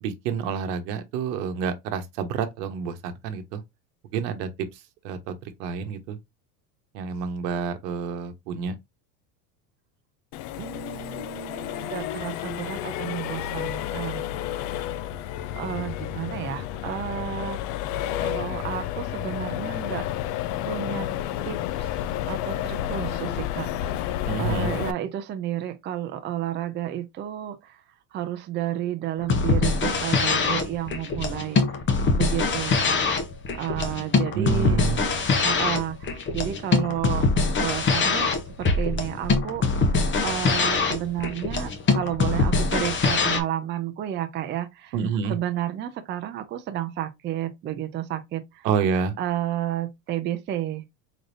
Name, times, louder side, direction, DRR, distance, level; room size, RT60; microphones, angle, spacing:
voice 1, 0.0-3.6 4.1-4.5 5.0-6.2 6.9-8.7 24.3-24.7 34.3-35.0 44.9-45.4 48.6-49.1, right 6 dB, 80° right, 1.0 m, -28 dB
Accelerating revving vroom, 10.3-24.9, left 11 dB, 60° left, 0.5 m, -31 dB
voice 2, 10.6-14.4 15.6-17.6 18.2-20.1 20.7-21.1 21.5-21.9 22.3-24.1 24.4-27.8 28.1-31.6 32.2-33.0 33.5-34.8 35.4-37.3 37.6-38.3 38.6-44.9 45.3-48.7 49.2-50.8, right 12 dB, 25° right, 0.4 m, -31 dB
sound 1, 29.2-43.4, left 4 dB, 25° left, 0.7 m, -23 dB
3.9 x 3.3 x 2.5 m
supercardioid pair, 120°, 48 cm